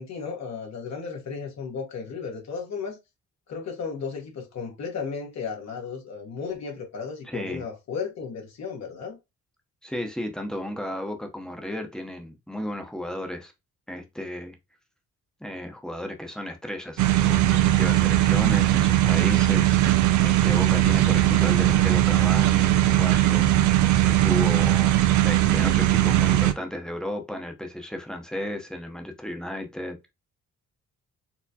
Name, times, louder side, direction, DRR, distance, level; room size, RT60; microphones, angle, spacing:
voice 1, 0.0-3.0 3.5-9.2, left 5 dB, 60° left, 1.4 m, -34 dB
voice 2, 7.3-7.6 9.8-13.5 13.9-14.6 15.4-19.8 20.2-25.0 25.2-30.1, left 1 dB, ahead, 0.8 m, -34 dB
sound 1, 17.0-26.5, right 14 dB, 75° right, 0.4 m, -20 dB
4.4 x 2.1 x 2.8 m
cardioid pair, 90°, 30 cm